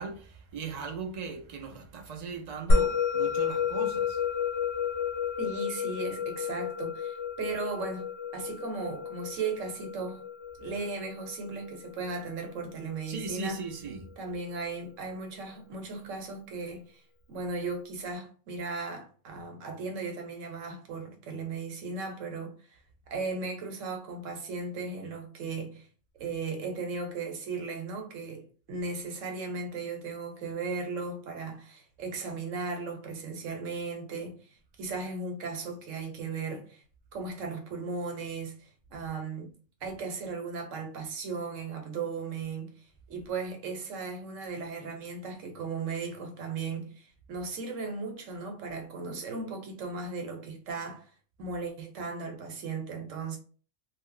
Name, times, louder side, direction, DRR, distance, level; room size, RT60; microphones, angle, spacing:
voice 1, 0.0-4.3 13.1-14.1, right 4 dB, 65° right, 0.4 m, -38 dB
Musical instrument, 2.7-13.3, left 5 dB, 80° left, 1.0 m, -31 dB
voice 2, 5.4-10.2 10.6-13.6 14.2-17.0 17.3-22.8 23.1-25.9 26.2-34.4 34.8-36.8 37.1-39.5 39.8-42.7 43.1-51.1 51.4-53.4, right 4 dB, 85° right, 1.1 m, -36 dB
2.4 x 2.0 x 3.7 m
omnidirectional pair, 1.3 m